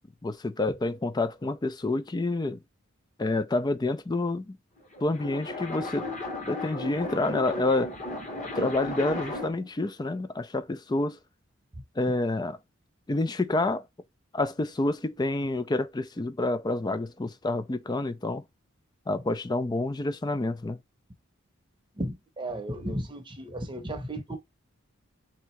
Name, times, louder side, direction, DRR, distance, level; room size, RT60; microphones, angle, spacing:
voice 1, 0.2-2.6 3.2-4.6 5.0-6.1 6.5-7.9 8.5-11.2 12.0-12.6 13.1-13.8 14.3-18.4 19.1-20.8, left 2 dB, 20° left, 0.4 m, -28 dB
sound 1, 4.8-9.7, left 1 dB, 35° left, 1.5 m, -35 dB
voice 2, 22.0-24.4, right 1 dB, 25° right, 0.8 m, -34 dB
3.6 x 2.9 x 4.4 m
head